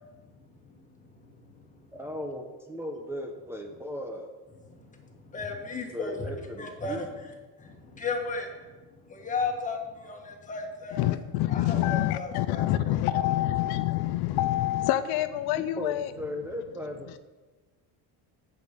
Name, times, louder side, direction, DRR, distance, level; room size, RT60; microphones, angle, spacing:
voice 1, 1.9-4.3 5.9-7.1 15.8-17.2, left 1 dB, 5° right, 0 dB, 0.7 m, -37 dB
voice 2, 5.3-6.3 6.6-7.3 7.6-8.5 9.1-11.1 11.5-13.2, left 4 dB, 20° left, 2 dB, 1.5 m, -34 dB
voice 3, 11.0-16.1, left 14 dB, 75° left, 12 dB, 0.6 m, -26 dB
8.7 x 8.1 x 6.7 m, 1.3 s
cardioid pair, 165°, 38 cm